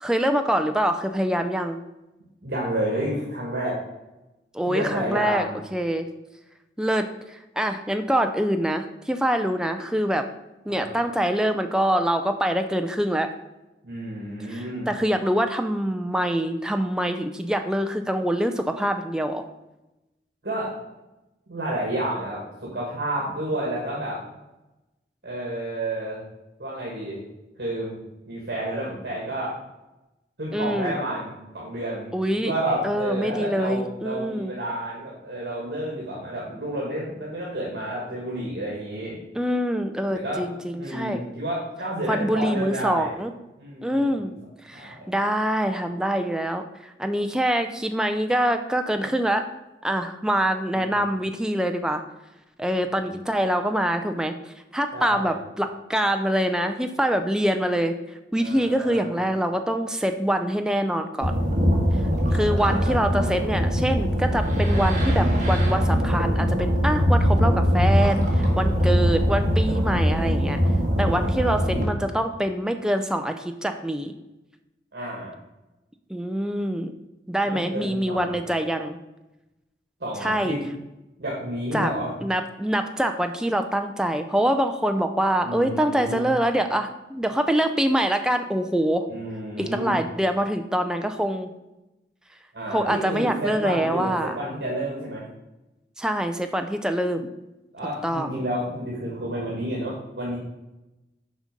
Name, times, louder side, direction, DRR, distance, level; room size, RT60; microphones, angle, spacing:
voice 1, 0.0-1.8 4.5-6.1 6.8-10.3 10.7-13.3 14.5-19.5 30.5-31.0 32.1-32.5 32.8-34.5 39.4-41.2 42.1-43.3 43.8-44.3 44.6-49.5 49.8-52.0 52.6-61.3 62.3-70.6 71.0-74.1 76.1-76.9 77.3-79.0 80.2-80.6 81.7-81.9 82.2-89.1 89.6-91.5 92.7-94.4 96.0-97.3 98.0-98.3, equal, 5° right, 6 dB, 0.3 m, -25 dB
voice 2, 2.4-3.8 4.7-5.6 10.7-10.9 13.8-14.9 20.4-20.7 21.5-24.2 25.2-26.2 26.6-27.2 27.6-28.0 28.3-29.5 30.4-32.1 32.4-39.2 40.2-40.4 40.8-43.1 43.6-44.3 44.7-45.1 50.7-51.0 52.9-53.2 54.9-55.4 58.4-59.1 62.3-63.4 71.0-71.5 74.9-75.3 77.4-78.3 80.0-80.6 81.2-82.1 85.4-86.3 89.1-90.0 92.5-95.2 97.7-100.4, right 1 dB, 65° right, -4 dB, 1.7 m, -30 dB
sound 1, 61.2-71.8, equal, 45° right, 1.5 m, -22 dB
6.4 x 5.0 x 5.2 m, 0.99 s
head